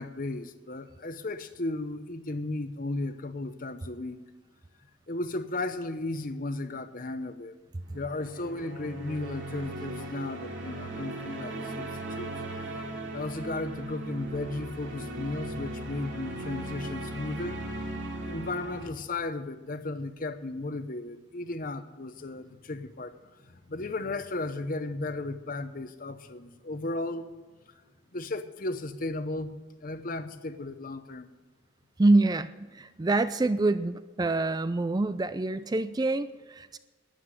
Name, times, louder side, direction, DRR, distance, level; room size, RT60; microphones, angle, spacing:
voice 1, 0.0-4.2 5.1-7.6 7.9-12.3 13.1-17.6 18.2-27.3 28.1-29.5 29.8-31.3, left 2 dB, 40° left, 11 dB, 0.9 m, -35 dB
sound 1, 7.8-18.9, right 1 dB, 60° right, 2.9 m, -38 dB
voice 2, 32.0-36.8, right 2 dB, 20° right, 13 dB, 0.4 m, -26 dB
12.5 x 9.7 x 9.8 m, 1.3 s
head